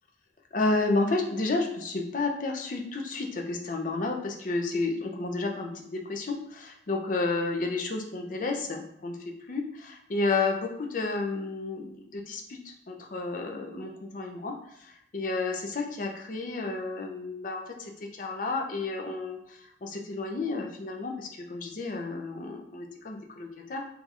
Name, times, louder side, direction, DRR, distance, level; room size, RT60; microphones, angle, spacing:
voice 1, 0.5-9.2 9.5-14.5 14.8-23.8, left 3 dB, 45° left, 2 dB, 0.5 m, -31 dB
2.8 x 2.4 x 4.0 m, 0.76 s
head